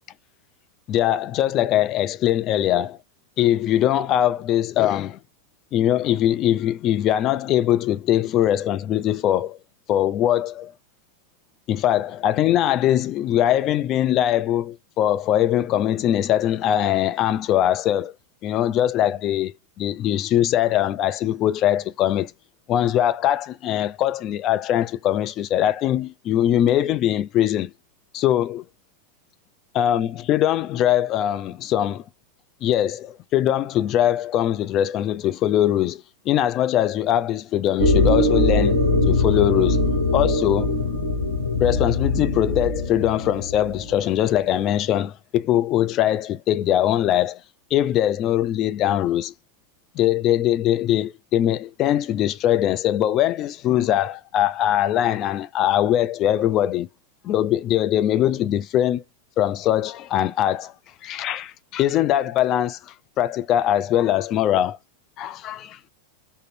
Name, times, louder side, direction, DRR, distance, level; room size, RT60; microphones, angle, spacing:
voice 1, 0.9-3.0 3.4-5.2 5.7-9.6 9.9-10.7 11.7-18.1 18.4-22.3 22.7-27.7 28.1-28.6 29.7-32.0 32.6-38.8 39.1-39.8 40.1-40.8 41.6-47.4 47.7-49.3 50.0-56.9 57.2-59.0 59.4-60.7 61.0-64.8 65.2-65.9, left 12 dB, 35° left, 0.3 m, -21 dB
sound 1, 37.8-44.3, left 2 dB, 85° left, 1.1 m, -22 dB
3.6 x 2.1 x 2.6 m
figure-of-eight pair, 90°, 0 cm